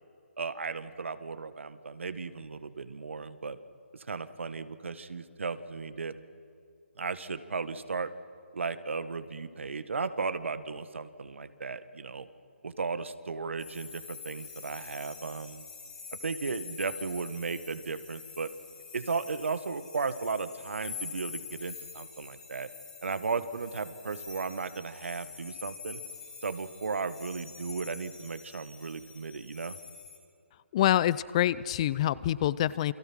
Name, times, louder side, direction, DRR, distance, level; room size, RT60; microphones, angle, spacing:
voice 1, 0.4-3.6 3.9-6.2 7.0-8.1 8.5-12.3 12.6-15.6 16.1-18.5 18.9-22.7 23.0-26.0 26.4-29.8, right 4 dB, 75° right, 12 dB, 1.7 m, -35 dB
sound 1, 13.6-30.2, left 6 dB, 10° left, 2.7 m, -46 dB
voice 2, 30.7-32.9, left 12 dB, 30° left, 19 dB, 0.5 m, -26 dB
28.5 x 22.5 x 6.2 m, 2.4 s
hypercardioid pair, 155°, 7 cm